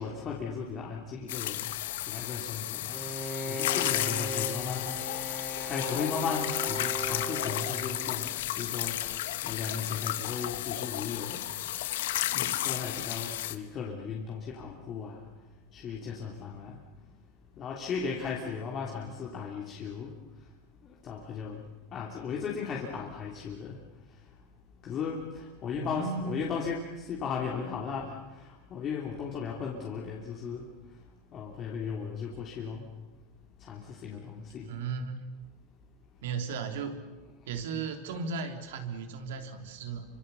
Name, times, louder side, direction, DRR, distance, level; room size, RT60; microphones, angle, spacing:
voice 1, 0.0-1.7 2.1-2.9 3.5-4.9 5.6-9.0 9.4-11.4 12.3-15.2 15.7-16.8 17.6-20.1 21.0-21.6 21.9-23.8 24.8-30.6 31.3-32.9 33.6-34.7, left 6 dB, 35° left, -2 dB, 3.2 m, -36 dB
sound 1, 1.3-13.6, left 14 dB, 80° left, 1.3 m, -33 dB
Bowed string instrument, 2.9-8.5, right 1 dB, 5° right, 2.9 m, -38 dB
voice 2, 25.8-26.4 34.7-35.2 36.2-37.0 37.4-40.0, right 5 dB, 80° right, 6 dB, 3.3 m, -35 dB
26.5 x 25.5 x 7.1 m, 1.2 s
supercardioid pair, 125°, 0 cm